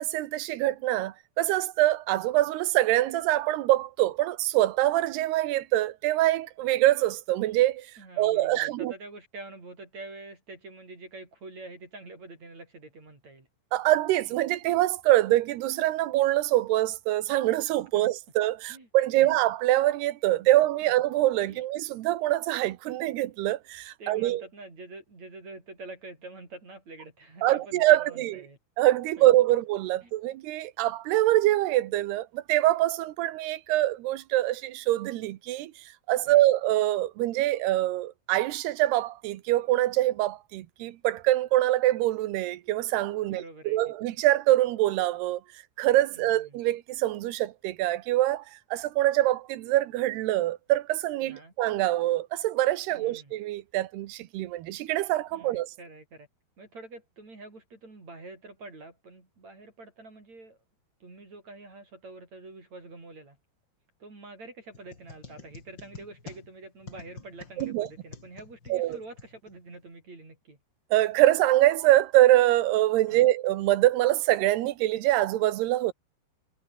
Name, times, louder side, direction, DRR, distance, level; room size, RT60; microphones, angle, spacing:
voice 1, 0.0-7.9 8.2-8.9 13.7-24.4 27.4-28.4 28.8-35.7 36.1-45.4 45.8-48.4 48.7-55.7 67.6-67.9 68.7-69.0 70.9-75.9, right 15 dB, 85° right, 3.1 m, -24 dB
voice 2, 8.0-13.5 17.9-18.1 18.7-18.9 19.1-19.4 21.5-21.7 24.0-28.6 29.2-29.3 30.0-30.1 36.3-36.5 43.2-43.8 46.1-46.6 51.2-51.5 52.9-53.3 55.3-56.3 56.6-60.6 61.0-63.4 64.0-70.6 73.1-73.3, right 2 dB, 45° right, 8.1 m, -46 dB
sound 1, 64.7-69.8, left 4 dB, 30° left, 3.5 m, -48 dB
omnidirectional pair, 4.6 m